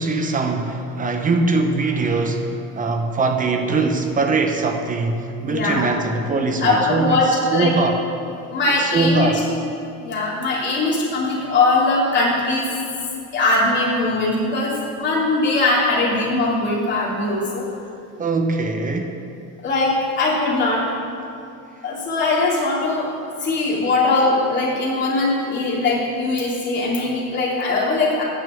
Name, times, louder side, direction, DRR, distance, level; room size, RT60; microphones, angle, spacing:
voice 1, 0.0-8.0 8.7-9.5 18.2-19.1, right 3 dB, 25° right, 5 dB, 0.7 m, -22 dB
voice 2, 5.5-5.8 6.6-7.3 7.5-7.7 8.5-9.6 10.0-12.7 13.3-17.6 19.6-20.8 21.8-23.1 23.4-28.2, left 2 dB, 35° left, -6 dB, 3.1 m, -20 dB
9.1 x 6.6 x 8.4 m, 2.6 s
cardioid pair, 150°, 32 cm